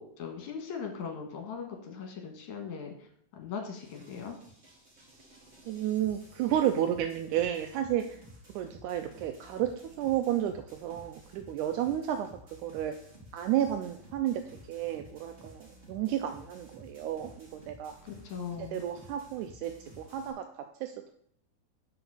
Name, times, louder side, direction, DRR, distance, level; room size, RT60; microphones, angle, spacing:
voice 1, 0.0-2.9 3.3-4.4 18.0-18.8, left 6 dB, 65° left, 3 dB, 2.5 m, -39 dB
sound 1, 3.7-20.3, equal, 25° right, 1.4 m, -54 dB
voice 2, 5.7-8.2 8.6-12.3 12.6-13.0 13.3-18.0 18.6-21.1, right 11 dB, 85° right, 6 dB, 1.8 m, -32 dB
5.9 x 5.4 x 6.8 m, 0.67 s
omnidirectional pair, 4.1 m